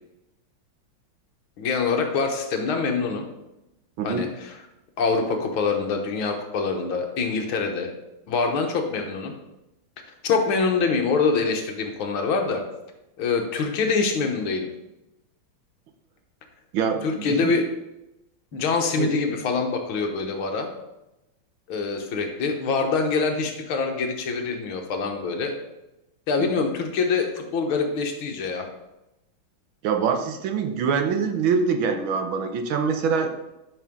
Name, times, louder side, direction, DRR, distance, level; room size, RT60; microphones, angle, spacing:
voice 1, 1.6-3.3 4.0-4.6 5.0-7.9 8.3-9.3 10.2-12.6 13.2-14.7 17.0-17.7 18.5-20.7 21.7-25.5 26.3-28.7, left 4 dB, 75° left, 3 dB, 1.9 m, -25 dB
voice 2, 4.0-4.3 16.7-17.5 18.9-19.1 26.4-26.5 29.8-33.3, right 5 dB, 70° right, 6 dB, 1.6 m, -24 dB
11.5 x 6.1 x 3.7 m, 0.94 s
omnidirectional pair, 2.3 m